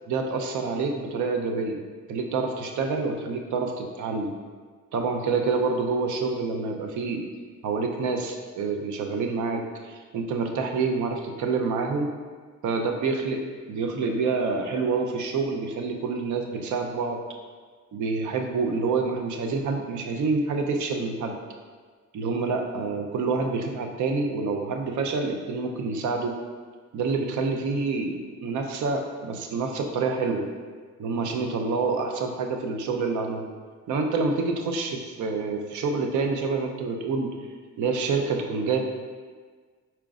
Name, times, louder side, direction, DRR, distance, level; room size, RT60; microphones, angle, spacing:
voice 1, 0.1-1.8 2.1-4.3 4.9-7.3 7.6-12.1 12.6-13.4 13.7-17.2 17.9-21.4 22.1-26.3 26.9-30.5 31.0-33.4 33.9-37.3 37.8-38.8, right 4 dB, 75° right, 3 dB, 0.6 m, -27 dB
5.0 x 4.4 x 2.4 m, 1.5 s
cardioid pair, 90°, 30 cm